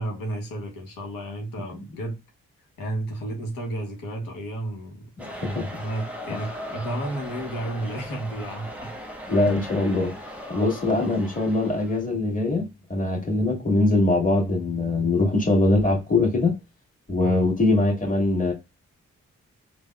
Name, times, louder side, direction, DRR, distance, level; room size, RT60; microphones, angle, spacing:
voice 1, 0.0-2.2 2.8-5.0 5.8-8.9 11.0-11.1 17.2-17.4, right 1 dB, 90° left, 0.9 m, -32 dB
voice 2, 5.2-5.7 9.3-10.1 10.5-12.6 12.9-16.5 17.1-18.5, left 2 dB, 25° left, 1.7 m, -22 dB
sound 1, 5.2-12.0, left 1 dB, 5° right, 0.9 m, -38 dB
3.3 x 2.1 x 2.3 m
supercardioid pair, 40°, 32 cm